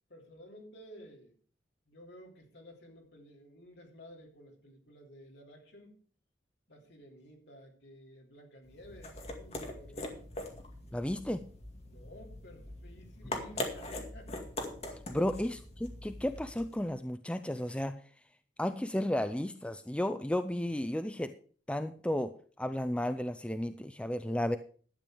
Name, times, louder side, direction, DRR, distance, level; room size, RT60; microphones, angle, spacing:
voice 1, 0.1-1.3 1.8-6.0 6.7-10.2 11.9-14.4 15.1-15.3, equal, 60° left, 1 dB, 3.4 m, -53 dB
sound 1, 8.7-16.9, left 1 dB, 35° left, 2.1 m, -42 dB
voice 2, 10.9-11.4 15.1-18.0 18.6-21.3 21.7-22.3 22.6-24.6, left 1 dB, 5° left, 9 dB, 0.4 m, -33 dB
12.0 x 8.8 x 5.0 m, 0.44 s
head